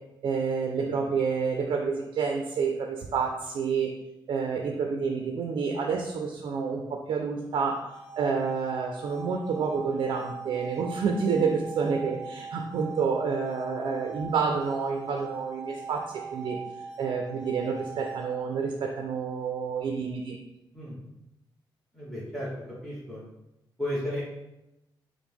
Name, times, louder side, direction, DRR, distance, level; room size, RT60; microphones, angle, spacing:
voice 1, 0.2-3.9 4.3-7.8 8.2-16.6 17.0-20.4, right 5 dB, 70° right, 2 dB, 0.4 m, -29 dB
sound 1, 7.7-18.7, right 5 dB, 45° left, 0.6 m, -41 dB
voice 2, 21.9-22.5 22.8-23.2 23.8-24.2, left 1 dB, ahead, -9 dB, 0.8 m, -33 dB
4.7 x 2.0 x 3.5 m, 0.90 s
wide cardioid pair, 175°, 8 cm